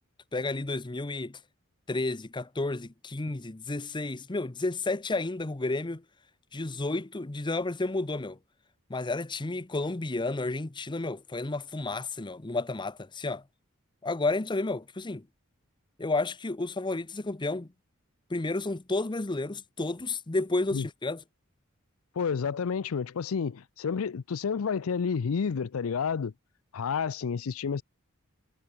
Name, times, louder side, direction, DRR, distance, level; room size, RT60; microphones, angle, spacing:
voice 1, 0.3-1.4 1.9-6.0 6.5-8.4 8.9-13.4 14.0-15.3 16.0-17.7 18.3-21.2, left 2 dB, 20° left, 0.8 m, -31 dB
voice 2, 22.2-26.3 26.7-27.8, left 6 dB, 75° left, 0.5 m, -30 dB
head